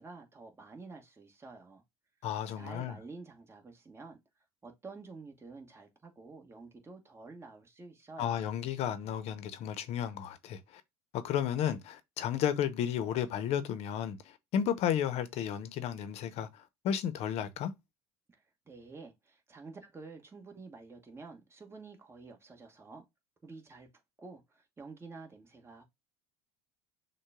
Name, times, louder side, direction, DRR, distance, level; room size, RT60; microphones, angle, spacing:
voice 1, 0.0-1.8 2.6-4.2 4.6-8.5 18.3-23.0 23.4-23.9 24.2-25.8, right 3 dB, 20° right, 1.2 m, -49 dB
voice 2, 2.2-3.0 8.2-10.8 11.1-17.7, left 9 dB, 55° left, 0.7 m, -33 dB
6.4 x 2.2 x 3.5 m
hypercardioid pair, 80°, 13 cm